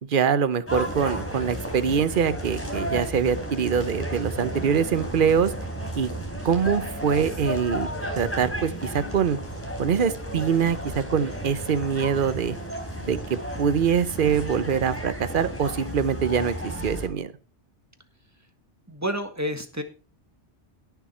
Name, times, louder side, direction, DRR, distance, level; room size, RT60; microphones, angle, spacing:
voice 1, 0.0-5.5 6.0-6.1 6.4-7.9 8.2-9.4 9.8-12.6 13.1-17.3, right 7 dB, 50° right, 14 dB, 0.9 m, -24 dB
sound 1, 0.7-17.1, equal, 10° left, 3.9 m, -33 dB
voice 2, 18.9-19.8, equal, 15° right, 6 dB, 1.6 m, -29 dB
18.0 x 7.1 x 4.4 m, 0.35 s
omnidirectional pair, 1.2 m